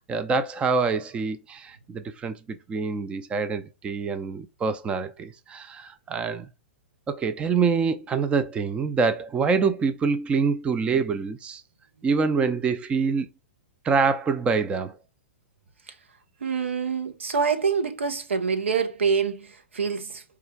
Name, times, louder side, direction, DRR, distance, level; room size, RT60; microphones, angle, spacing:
voice 1, 0.0-6.5 7.1-11.6 12.0-13.3 13.8-15.0, right 5 dB, 15° right, 0.4 m, -25 dB
voice 2, 16.4-20.2, right 5 dB, 80° right, 0.9 m, -26 dB
4.7 x 2.4 x 4.5 m
hypercardioid pair, 115°, 7 cm